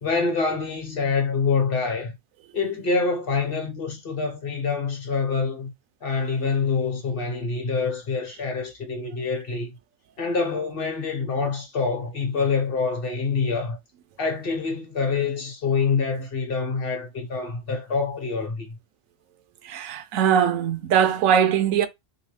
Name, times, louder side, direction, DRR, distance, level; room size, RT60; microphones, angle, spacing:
voice 1, 0.0-2.1 2.5-5.7 6.0-9.7 10.2-13.8 14.2-18.8, left 4 dB, 50° left, 1.0 m, -26 dB
voice 2, 19.6-21.9, right 8 dB, 90° right, 1.0 m, -21 dB
3.1 x 3.1 x 3.2 m
omnidirectional pair, 1.4 m